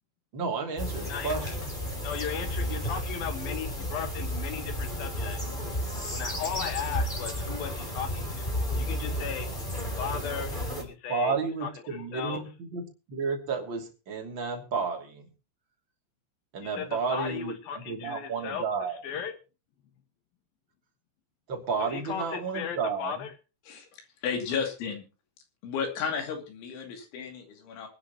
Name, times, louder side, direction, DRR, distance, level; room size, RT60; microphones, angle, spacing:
voice 1, 0.3-1.7 10.8-15.3 16.5-17.5 17.8-19.0 21.5-23.2, right 5 dB, 30° right, 1 dB, 2.8 m, -32 dB
sound 1, 0.8-10.8, equal, 15° left, 2.1 m, -32 dB
voice 2, 1.0-1.6 2.0-5.4 6.1-8.5 8.8-9.5 10.0-10.5 11.0-12.4 16.6-19.4 21.8-23.3, left 7 dB, 65° left, 8 dB, 2.9 m, -36 dB
voice 3, 24.2-25.0 25.6-27.9, left 6 dB, 85° left, 3 dB, 5.2 m, -33 dB
24.5 x 10.5 x 3.0 m, 0.31 s
omnidirectional pair, 5.3 m